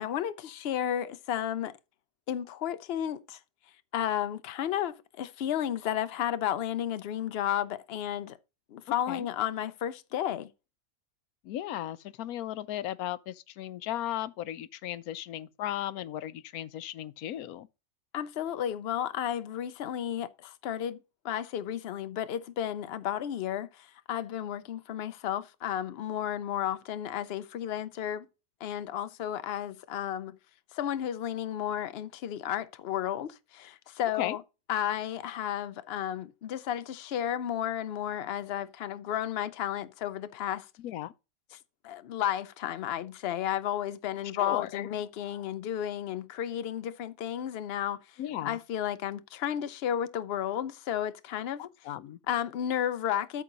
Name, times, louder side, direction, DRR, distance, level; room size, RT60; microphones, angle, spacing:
voice 1, 0.0-1.7 2.3-3.4 3.9-8.4 8.7-10.5 18.1-21.0 21.2-28.3 28.6-30.4 30.7-34.4 34.7-40.7 41.8-51.7 52.3-53.4, left 10 dB, 55° left, 0.7 m, -33 dB
voice 2, 11.4-17.7 34.2-34.4 40.8-41.1 44.4-44.9 48.2-48.6 51.6-52.2, left 12 dB, 80° left, 1.1 m, -36 dB
8.5 x 6.0 x 3.9 m
omnidirectional pair, 1.5 m